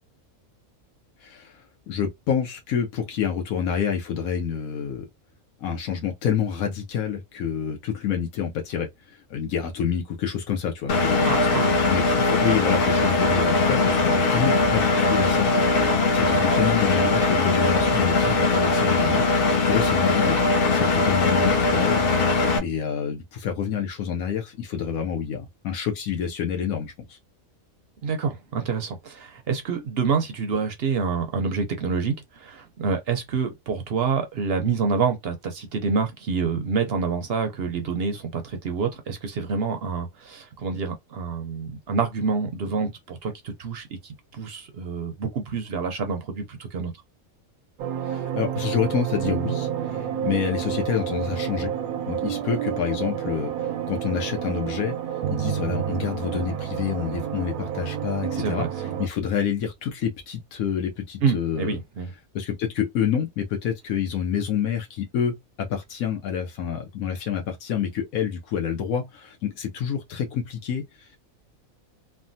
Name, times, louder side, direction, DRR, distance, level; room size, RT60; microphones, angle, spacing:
voice 1, 1.2-1.6 1.9-5.0 5.6-11.4 11.9-15.5 16.1-19.2 19.7-20.4 20.7-22.0 22.6-27.2 48.1-51.7 52.1-55.0 55.3-58.7 59.0-61.8 62.3-71.2, left 8 dB, 80° left, 1.1 m, -28 dB
Engine, 10.9-22.6, left 3 dB, 55° left, 0.7 m, -21 dB
voice 2, 11.2-11.8 20.7-21.0 28.0-46.9 58.4-59.0 61.2-62.1, right 5 dB, 60° right, 0.7 m, -27 dB
sound 1, 47.8-59.1, right 9 dB, 85° right, 1.1 m, -29 dB
3.2 x 2.2 x 2.6 m
omnidirectional pair, 1.5 m